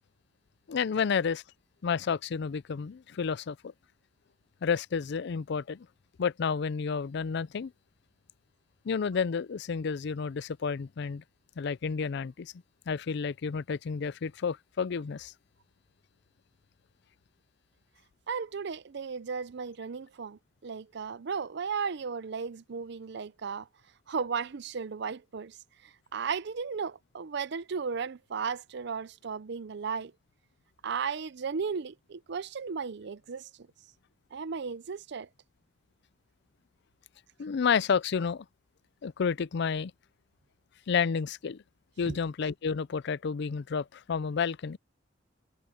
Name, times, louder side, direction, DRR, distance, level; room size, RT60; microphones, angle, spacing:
voice 1, 0.7-1.4 1.8-3.7 4.6-5.9 6.2-7.7 8.9-11.2 11.6-12.5 12.9-15.3 37.4-38.5 39.0-39.9 40.9-41.6 42.0-44.8, left 6 dB, 65° left, 0.4 m, -30 dB
voice 2, 18.3-23.7 24.1-25.6 25.8-30.1 30.8-33.5 34.3-35.3 42.1-42.2, right 5 dB, 65° right, 0.5 m, -35 dB
head